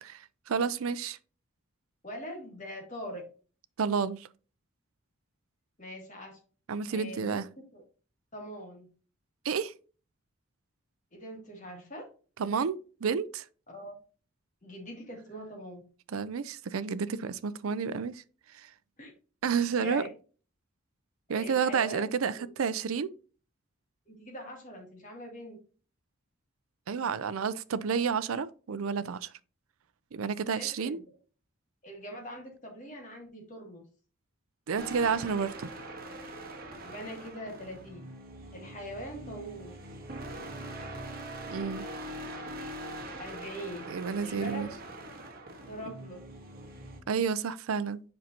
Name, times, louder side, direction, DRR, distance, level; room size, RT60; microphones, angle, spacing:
voice 1, 0.0-1.2 3.8-4.3 6.7-7.5 9.4-9.7 12.4-13.4 16.1-18.2 18.5-18.7 19.4-20.0 21.3-23.1 26.9-29.3 30.1-31.0 34.7-35.7 41.5-41.9 43.9-44.7 47.1-48.0, right 6 dB, 90° right, 0.5 m, -30 dB
voice 2, 2.0-3.2 5.8-6.4 6.9-7.4 7.7-7.8 8.3-8.9 11.1-12.1 13.7-14.0 14.6-15.8 19.0-19.1 19.8-20.1 21.3-22.0 22.3-22.5 24.1-25.6 30.5-31.0 31.8-33.8 36.8-38.0 38.5-39.8 43.2-43.9 44.2-44.6 45.7-46.2, equal, 35° left, 2.6 m, -42 dB
sound 1, 34.8-47.0, right 1 dB, 45° right, 1.4 m, -42 dB
7.7 x 5.5 x 2.8 m
head